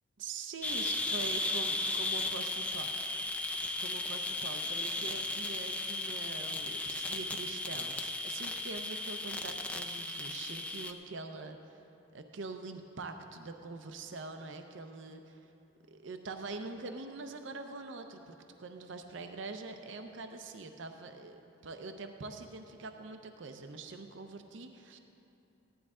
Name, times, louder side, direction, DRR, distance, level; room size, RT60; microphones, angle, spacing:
voice 1, 0.2-3.2 3.8-11.8 12.1-15.5 15.9-25.0, right 3 dB, 70° right, 6 dB, 0.6 m, -44 dB
sound 1, 0.6-10.9, left 2 dB, 5° left, 0.4 m, -35 dB
15.5 x 11.0 x 3.7 m, 2.8 s
head